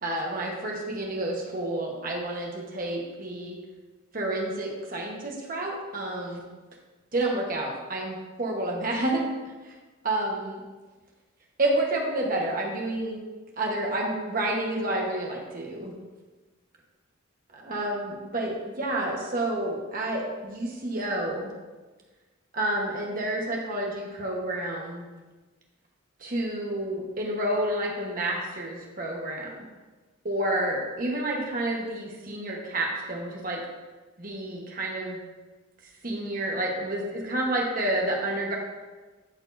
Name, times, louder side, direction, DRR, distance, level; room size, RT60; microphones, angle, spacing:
voice 1, 0.0-3.6 4.1-6.4 7.1-9.2 9.6-9.7 10.0-10.6 11.6-13.2 13.6-15.9 17.6-21.5 22.5-25.0 26.2-29.7 30.2-33.6 34.2-35.2 36.0-38.5, right 1 dB, 40° right, -1 dB, 1.3 m, -29 dB
12.5 x 4.4 x 2.7 m, 1.3 s
head